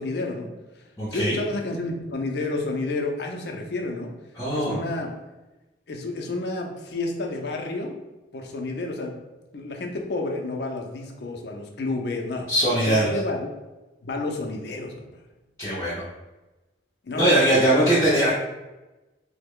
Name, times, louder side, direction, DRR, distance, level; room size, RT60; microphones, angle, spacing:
voice 1, 0.0-0.8 1.1-4.1 4.5-5.1 5.9-7.9 8.3-9.1 9.5-13.5 14.0-15.1 17.0-17.9, left 2 dB, 65° left, 2 dB, 0.5 m, -30 dB
voice 2, 1.0-1.4 4.4-4.8 12.5-13.1 15.6-16.0 17.1-18.3, right 1 dB, 15° left, -10 dB, 0.6 m, -21 dB
3.3 x 2.1 x 3.6 m, 1.1 s
head